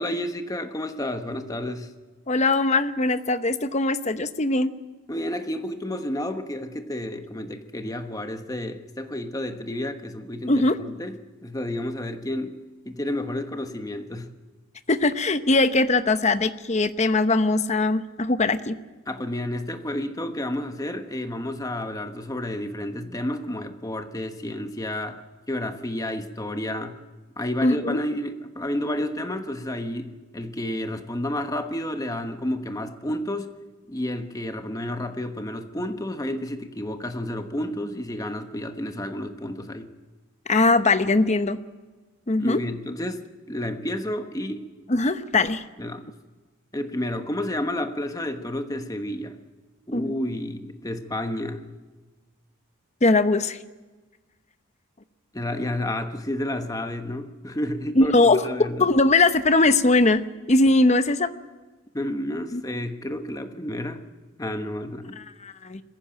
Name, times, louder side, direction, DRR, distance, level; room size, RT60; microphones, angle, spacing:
voice 1, 0.0-1.9 5.1-14.3 19.1-26.9 27.4-33.5 33.9-39.9 42.4-44.7 45.8-46.0 46.7-49.4 49.9-51.7 55.3-58.9 61.9-64.0 64.4-65.2, left 1 dB, 15° left, 7 dB, 1.2 m, -31 dB
voice 2, 2.3-4.7 10.5-10.8 14.9-18.8 27.6-28.0 40.5-41.6 42.3-42.6 44.9-45.6 49.9-50.1 53.0-53.6 58.0-58.5 58.8-61.3 62.5-62.6 65.2-65.8, left 2 dB, 35° left, 11 dB, 0.9 m, -21 dB
21.5 x 15.5 x 9.0 m, 1.3 s
head